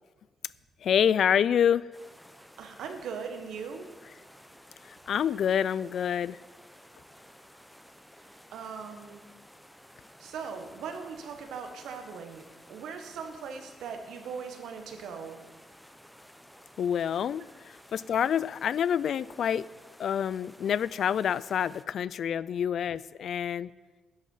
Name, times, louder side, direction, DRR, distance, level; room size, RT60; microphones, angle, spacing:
voice 1, 0.8-1.8 4.8-6.4 16.8-19.7 20.0-23.7, left 8 dB, 65° left, 20 dB, 0.3 m, -27 dB
sound 1, 1.9-21.9, equal, ahead, 0.7 m, -54 dB
voice 2, 2.6-3.9 8.5-9.2 10.2-15.4, right 6 dB, 85° right, 5 dB, 1.5 m, -39 dB
11.0 x 9.3 x 5.6 m, 1.3 s
cardioid pair, 100°, 0 cm